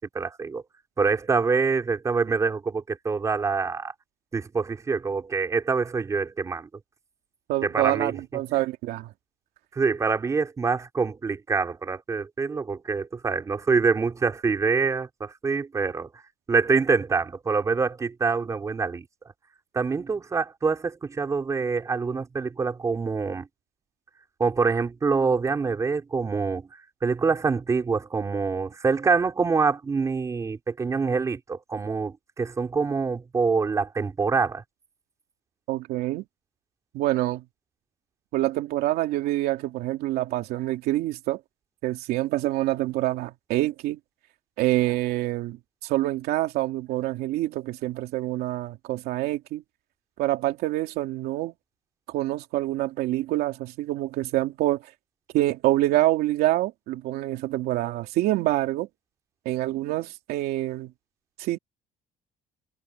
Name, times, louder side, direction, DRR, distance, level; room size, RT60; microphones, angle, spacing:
voice 1, 0.1-0.6 1.0-3.9 4.3-6.7 7.6-8.1 8.5-8.6 9.8-16.1 16.5-19.0 19.7-23.5 24.4-26.7 27.0-34.6, right 4 dB, 20° right, 3.9 m, -25 dB
voice 2, 7.5-9.1 35.7-36.2 36.9-37.4 38.3-41.4 41.8-44.0 44.6-49.6 50.2-51.5 52.1-54.8 55.3-58.9 59.4-60.9 61.4-61.6, right 16 dB, 80° right, 2.7 m, -26 dB
cardioid pair, 170°, 16 cm